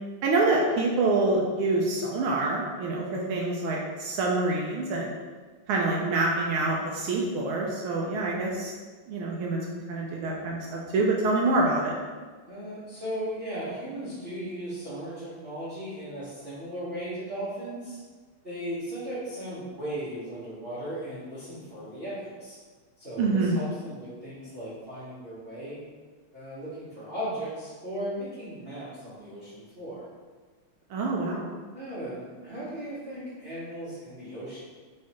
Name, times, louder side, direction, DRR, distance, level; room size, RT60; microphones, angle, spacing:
voice 1, 0.2-5.1 5.7-8.7 9.1-11.9 23.2-23.6 30.9-31.4, right 2 dB, 80° right, -2 dB, 1.4 m, -26 dB
voice 2, 12.5-18.0 18.4-22.6 23.0-25.8 26.3-30.1 31.7-34.6, right 1 dB, 40° right, -12 dB, 0.8 m, -37 dB
4.8 x 3.2 x 2.9 m, 1.4 s
omnidirectional pair, 2.4 m